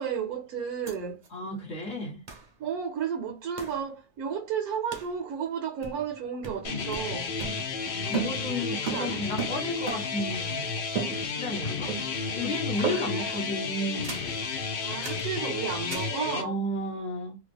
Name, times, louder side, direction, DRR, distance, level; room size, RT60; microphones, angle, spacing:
voice 1, 0.0-1.2 2.6-7.3 8.9-9.3 12.8-13.3 14.8-16.6, right 7 dB, 75° right, 1.1 m, -33 dB
sound 1, 0.9-1.0 1.2-1.3 2.3-2.5 3.6-3.8 4.9-5.2 5.8-6.2 6.4-10.3 10.9-11.6 11.9-12.3 12.8-13.3 14.0-14.4 15.0-15.3 15.9-16.2, right 7 dB, 45° right, 0.6 m, -36 dB
voice 2, 1.3-2.2 8.1-10.7 11.2-14.2 16.3-17.4, left 1 dB, 50° left, 1.1 m, -33 dB
sound 2, 6.6-16.4, left 5 dB, 70° left, 0.5 m, -32 dB
2.7 x 2.4 x 3.4 m
omnidirectional pair, 1.6 m